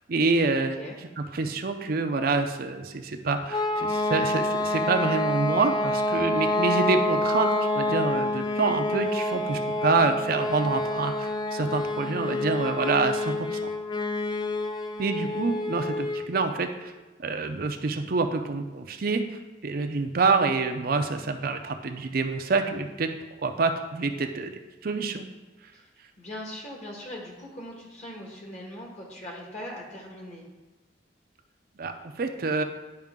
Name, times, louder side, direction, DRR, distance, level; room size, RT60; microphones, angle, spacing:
voice 1, 0.1-0.8 1.3-13.7 15.0-16.9 17.2-23.1 23.4-24.5 24.8-25.3 31.8-32.6, right 3 dB, 55° right, 6 dB, 0.5 m, -27 dB
sound 1, 3.5-16.3, left 2 dB, 25° left, 0.4 m, -27 dB
voice 2, 26.2-30.4, left 1 dB, 40° left, -2 dB, 1.5 m, -40 dB
10.5 x 4.8 x 3.6 m, 1.2 s
head